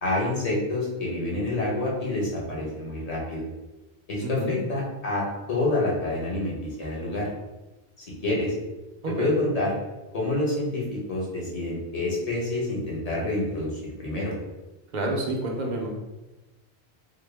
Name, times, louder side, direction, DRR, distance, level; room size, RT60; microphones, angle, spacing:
voice 1, 0.0-3.5 4.1-7.3 8.2-8.5 9.2-9.7 10.1-14.3, left 2 dB, 35° left, -5 dB, 1.1 m, -27 dB
voice 2, 4.2-4.6 9.0-9.3 14.9-15.9, right 1 dB, 50° right, 0 dB, 0.7 m, -28 dB
3.8 x 2.2 x 3.4 m, 1.1 s
omnidirectional pair, 1.1 m